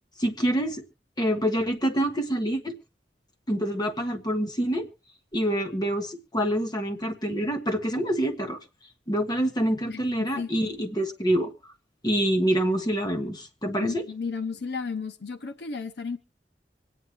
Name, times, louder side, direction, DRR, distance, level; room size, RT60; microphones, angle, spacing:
voice 1, 0.2-0.8 1.2-2.7 3.5-4.9 5.3-8.6 9.1-11.5 12.0-14.0, right 1 dB, 25° left, 1.4 m, -26 dB
voice 2, 10.4-10.7 13.8-16.2, left 5 dB, 70° left, 0.7 m, -33 dB
25.0 x 9.4 x 3.1 m
head